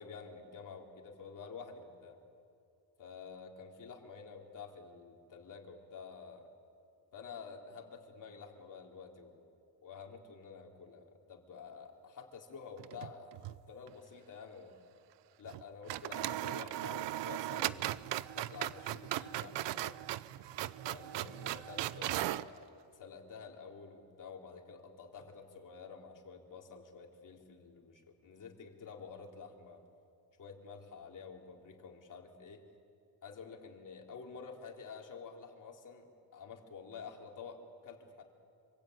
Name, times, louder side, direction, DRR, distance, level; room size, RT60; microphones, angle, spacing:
voice 1, 0.0-2.2 3.0-6.5 7.1-9.5 9.8-13.4 13.7-14.8 15.4-20.0 20.8-29.8 30.4-32.6 33.2-38.2, left 5 dB, 40° left, 1 dB, 3.8 m, -50 dB
sound 1, 12.8-13.6 13.9-14.0 15.5-15.6 15.9-22.5, right 14 dB, 65° right, 0.8 m, -38 dB
26.0 x 24.0 x 9.5 m, 2.4 s
cardioid pair, 130°, 46 cm